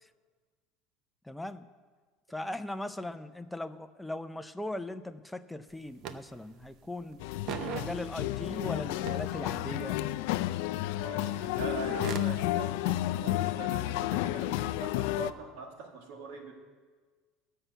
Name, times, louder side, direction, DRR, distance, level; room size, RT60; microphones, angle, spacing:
voice 1, 1.3-1.7 2.3-7.2 7.6-10.0, left 1 dB, 5° left, 9 dB, 0.4 m, -39 dB
sound 1, 5.7-5.8 6.0-6.8 7.0-8.6 9.0-10.2 11.2-12.4, right 7 dB, 45° right, 0.6 m, -40 dB
sound 2, 7.2-15.3, left 15 dB, 80° left, 0.4 m, -31 dB
voice 2, 11.0-16.5, right 5 dB, 80° right, 3 dB, 1.7 m, -43 dB
13.0 x 5.6 x 8.0 m, 1.5 s
cardioid pair, 160°, 0 cm